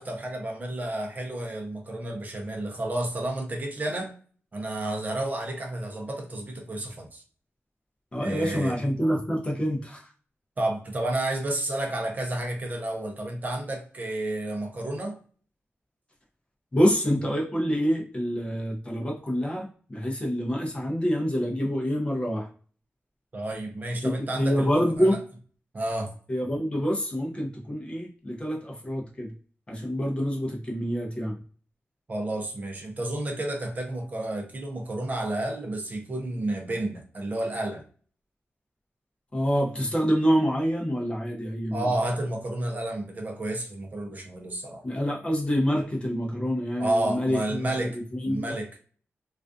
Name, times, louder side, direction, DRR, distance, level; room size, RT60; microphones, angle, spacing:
voice 1, 0.0-4.1 4.5-7.2 8.2-8.8 10.6-15.1 23.3-25.2 25.7-26.1 32.1-37.8 41.7-44.8 46.8-48.0 48.2-48.7, right 1 dB, 35° right, 2 dB, 0.6 m, -31 dB
voice 2, 8.1-10.1 16.7-22.5 24.0-25.2 26.3-29.3 29.7-31.4 39.3-41.8 44.8-48.5, equal, 25° left, -1 dB, 0.6 m, -27 dB
2.4 x 2.3 x 2.4 m, 0.42 s
wide cardioid pair, 135°, 5 cm